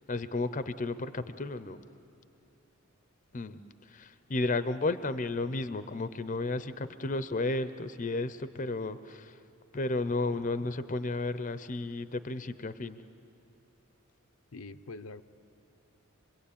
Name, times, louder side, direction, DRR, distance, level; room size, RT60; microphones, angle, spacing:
voice 1, 0.0-1.8 3.3-9.4 9.7-13.0, left 2 dB, 35° left, 12 dB, 0.6 m, -33 dB
voice 2, 14.5-15.2, left 3 dB, 85° left, 8 dB, 0.7 m, -44 dB
26.0 x 22.0 x 8.6 m, 2.6 s
head